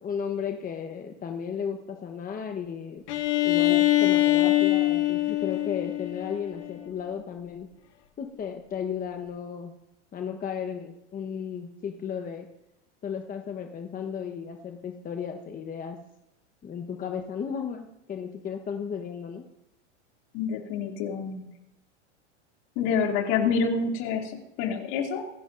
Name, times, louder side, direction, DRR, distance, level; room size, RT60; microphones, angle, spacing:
voice 1, 0.0-3.0 3.4-7.7 8.2-9.7 10.1-12.5 13.0-16.0 16.6-19.4, left 7 dB, 25° left, 4 dB, 1.1 m, -34 dB
Bowed string instrument, 3.1-6.8, left 16 dB, 75° left, 1.8 m, -23 dB
voice 2, 20.3-21.4 22.8-25.3, left 5 dB, 50° left, 2 dB, 2.8 m, -27 dB
25.5 x 11.0 x 2.6 m, 0.88 s
hypercardioid pair, 110°, 35 cm